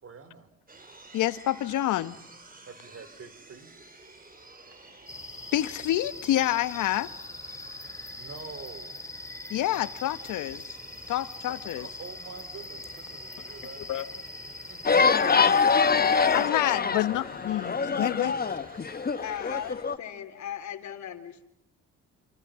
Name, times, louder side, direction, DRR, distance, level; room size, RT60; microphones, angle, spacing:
voice 1, 0.0-0.5 2.7-3.7 8.1-9.0 11.8-13.9 14.7-15.3, right 5 dB, 50° right, 4.7 m, -46 dB
sound 1, 0.7-19.7, right 2 dB, 30° right, 4.4 m, -52 dB
voice 2, 1.1-2.2 5.5-7.1 9.5-10.7 11.1-11.9 13.9-14.1 16.3-18.3, left 14 dB, 85° left, 1.2 m, -28 dB
sound 2, 5.1-16.5, left 2 dB, 10° left, 2.6 m, -42 dB
sound 3, 14.8-20.0, left 5 dB, 30° left, 1.4 m, -24 dB
voice 3, 15.9-16.9 19.2-21.5, left 9 dB, 70° left, 3.5 m, -37 dB
28.5 x 27.0 x 7.5 m
cardioid pair, 90°, 30 cm